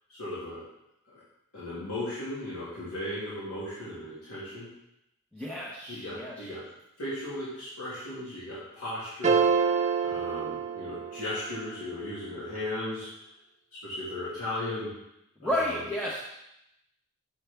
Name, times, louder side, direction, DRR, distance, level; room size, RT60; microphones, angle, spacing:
voice 1, 0.1-0.6 1.1-1.2 1.5-4.7 5.9-6.6 7.0-9.4 10.0-13.1 13.8-14.9 15.4-15.8, left 1 dB, 90° left, -9 dB, 2.0 m, -36 dB
voice 2, 5.3-6.5 15.4-16.2, left 1 dB, 5° left, -6 dB, 0.8 m, -32 dB
sound 1, 9.2-11.5, right 6 dB, 30° right, 0.6 m, -26 dB
6.8 x 6.1 x 3.4 m, 0.84 s
head